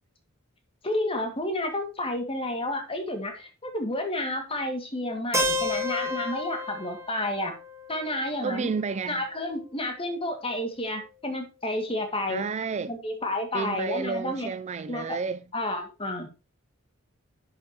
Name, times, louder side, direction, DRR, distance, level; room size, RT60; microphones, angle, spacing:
voice 1, 0.8-7.5 7.9-8.7 9.1-12.4 12.9-14.5 14.9-15.2 15.5-16.3, left 1 dB, 25° left, 2.1 m, -30 dB
Keyboard (musical), 5.3-9.2, left 1 dB, 15° right, 1.7 m, -32 dB
voice 2, 8.4-9.2 12.3-12.9 13.5-15.4, right 5 dB, 35° right, 0.4 m, -31 dB
10.5 x 7.2 x 2.9 m
head